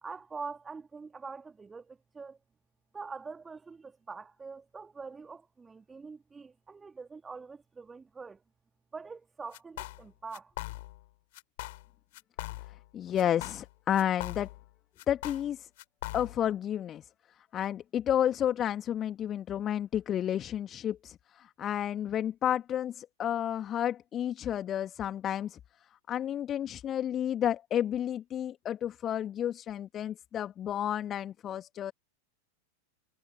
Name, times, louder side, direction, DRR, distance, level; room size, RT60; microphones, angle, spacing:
voice 1, 0.0-2.4 2.9-8.4 8.9-10.5, right 4 dB, 15° right, 2.6 m, -44 dB
sound 1, 9.5-10.1 10.3-11.1 11.3-11.9 12.1-12.9 13.2-14.7 15.0-16.5, left 19 dB, 50° left, 7.7 m, -41 dB
voice 2, 12.9-14.5 15.1-15.7 16.1-17.1 17.5-25.6 26.1-31.9, left 10 dB, 30° left, 2.2 m, -31 dB
figure-of-eight pair, 90°, 0 cm